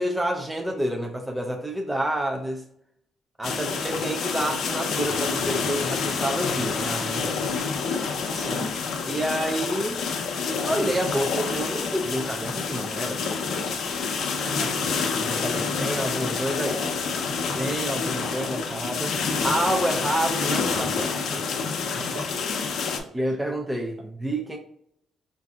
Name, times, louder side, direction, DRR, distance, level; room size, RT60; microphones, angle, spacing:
voice 1, 0.0-2.7 3.4-7.4 9.1-10.0 10.6-13.5 14.1-14.6 15.1-16.9 17.6-19.2 19.4-21.5 23.1-24.6, right 1 dB, 10° right, 0.5 m, -29 dB
sound 1, 3.4-23.0, left 5 dB, 70° left, 0.6 m, -28 dB
voice 2, 3.5-3.9 8.3-8.7 9.2-9.3 14.5-15.1 21.9-22.5 23.2-23.3, right 2 dB, 45° right, 0.8 m, -38 dB
4.7 x 2.6 x 2.3 m
cardioid pair, 90°, 0 cm